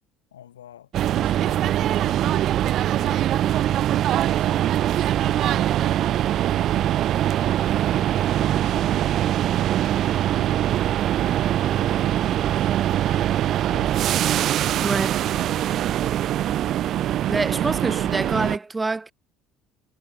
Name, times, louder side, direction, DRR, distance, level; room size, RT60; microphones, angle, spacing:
voice 1, 0.3-4.0 4.3-7.3 7.9-9.7 10.3-14.1 15.3-15.7, left 11 dB, 85° left, 5.7 m, -48 dB
sound 1, 0.9-18.6, right 12 dB, 55° right, 0.3 m, -22 dB
voice 2, 14.8-15.2 17.3-19.1, right 3 dB, 20° right, 1.6 m, -26 dB
hypercardioid pair, 60°, 0 cm